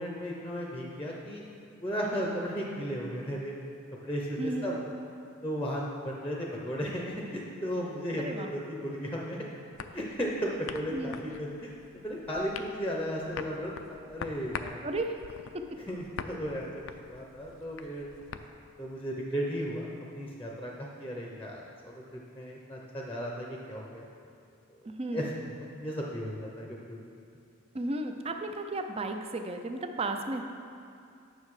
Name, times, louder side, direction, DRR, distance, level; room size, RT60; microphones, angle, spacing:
voice 1, 0.0-1.4 1.8-3.5 4.0-4.9 5.4-9.4 9.9-14.8 15.9-18.1 18.8-19.9 20.1-24.0 25.1-25.3 25.7-27.1, equal, 10° left, -2 dB, 0.7 m, -35 dB
voice 2, 4.4-4.7 8.1-8.5 10.9-11.1 14.8-15.2 15.5-15.6 24.8-25.3 27.7-30.4, right 2 dB, 25° right, 5 dB, 0.5 m, -34 dB
sound 1, 9.7-18.5, left 5 dB, 65° left, 0.4 m, -44 dB
9.4 x 6.4 x 4.8 m, 2.5 s
head